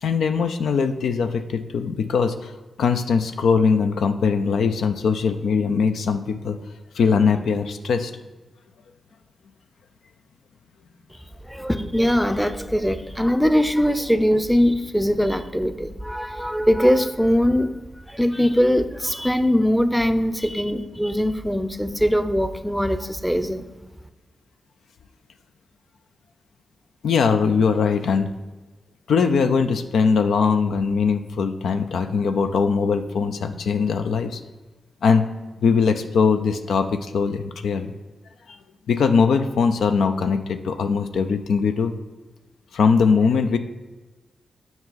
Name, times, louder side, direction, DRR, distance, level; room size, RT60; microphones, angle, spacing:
voice 1, 0.0-2.5 2.8-6.6 6.9-8.1 20.4-20.6 27.0-28.3 29.1-34.4 35.0-35.2 35.6-37.9 38.9-41.9 42.7-43.6, left 5 dB, 80° left, 8 dB, 0.4 m, -21 dB
voice 2, 11.5-17.8 18.1-23.6, equal, ahead, 10 dB, 0.6 m, -21 dB
7.1 x 5.3 x 3.9 m, 1.2 s
cardioid pair, 50°, 0 cm